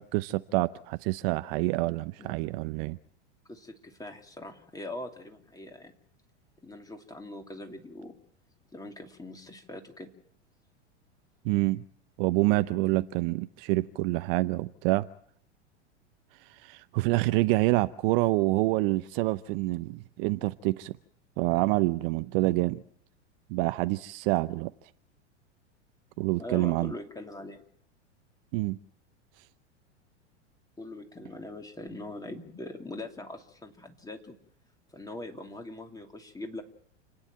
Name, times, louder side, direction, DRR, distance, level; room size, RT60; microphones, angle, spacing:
voice 1, 0.0-3.0 11.4-11.8 12.2-15.1 16.6-20.9 21.4-22.8 23.5-24.7 26.2-26.9 28.5-28.8, right 20 dB, 50° right, 0.8 m, -27 dB
voice 2, 3.5-5.9 6.6-8.2 8.7-10.1 26.4-27.6 30.8-34.3 34.9-36.6, left 2 dB, 10° left, 2.9 m, -42 dB
29.5 x 9.9 x 9.4 m
hypercardioid pair, 100°, 36 cm